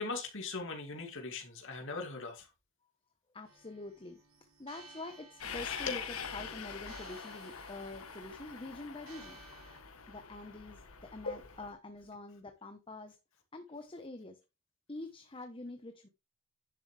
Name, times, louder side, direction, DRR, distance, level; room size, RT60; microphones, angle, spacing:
voice 1, 0.0-2.5 5.9-6.0 11.2-11.5, left 3 dB, 60° left, 2.5 m, -39 dB
voice 2, 3.3-4.2 4.6-9.4 10.1-13.2 13.5-14.4 14.9-16.1, left 2 dB, 25° left, 1.0 m, -46 dB
sound 1, 3.4-9.8, right 3 dB, 75° right, 4.0 m, -58 dB
Train, 5.4-11.7, left 6 dB, 80° left, 1.5 m, -44 dB
10.5 x 7.0 x 3.3 m
head